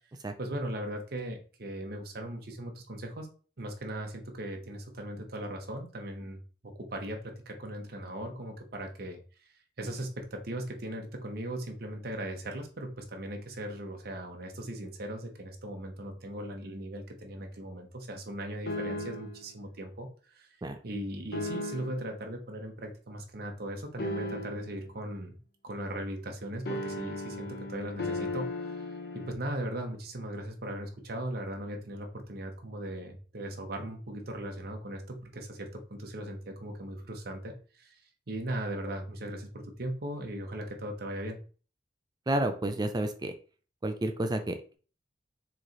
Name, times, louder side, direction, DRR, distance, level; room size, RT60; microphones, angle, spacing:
voice 1, 0.4-3.3 3.6-20.5 20.8-25.4 25.6-28.9 29.1-37.9 38.3-41.4, right 1 dB, 60° right, 3 dB, 0.9 m, -38 dB
sound 1, 18.7-19.4 21.3-22.1 24.0-24.8 26.7-29.3, left 2 dB, 60° left, 0.8 m, -36 dB
voice 2, 42.3-43.3 43.8-44.7, right 1 dB, 25° right, 7 dB, 0.4 m, -30 dB
4.3 x 3.2 x 3.8 m, 0.39 s
head